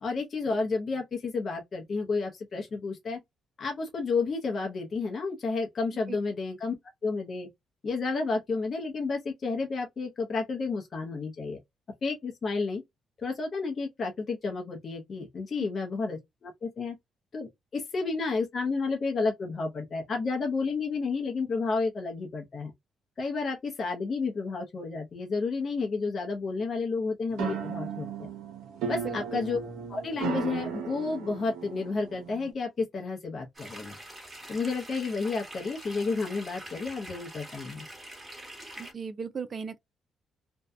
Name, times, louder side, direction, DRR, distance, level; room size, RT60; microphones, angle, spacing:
voice 1, 0.0-3.2 3.6-6.7 7.0-7.5 7.8-11.6 12.0-12.8 13.2-17.0 17.3-22.7 23.2-28.3 28.9-29.6 29.9-34.0 34.5-37.8, left 4 dB, 45° left, 0.7 m, -31 dB
sound 1, 27.3-32.5, right 7 dB, 85° right, 0.7 m, -36 dB
sound 2, 33.5-38.9, right 1 dB, 20° right, 1.2 m, -45 dB
voice 2, 38.8-39.8, right 6 dB, 40° right, 0.4 m, -36 dB
2.6 x 2.2 x 2.2 m
cardioid pair, 90°, 0 cm